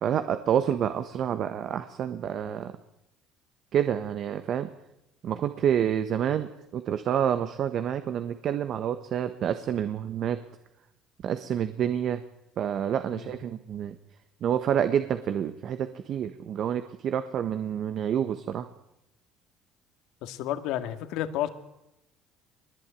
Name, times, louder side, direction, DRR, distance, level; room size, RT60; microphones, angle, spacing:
voice 1, 0.0-2.7 3.7-4.7 5.2-10.4 11.2-12.2 12.6-14.0 14.4-18.7, right 9 dB, 55° right, 10 dB, 1.4 m, -28 dB
voice 2, 20.2-21.5, left 12 dB, 75° left, 8 dB, 2.1 m, -31 dB
22.5 x 20.5 x 9.2 m, 0.87 s
supercardioid pair, 90°, 0 cm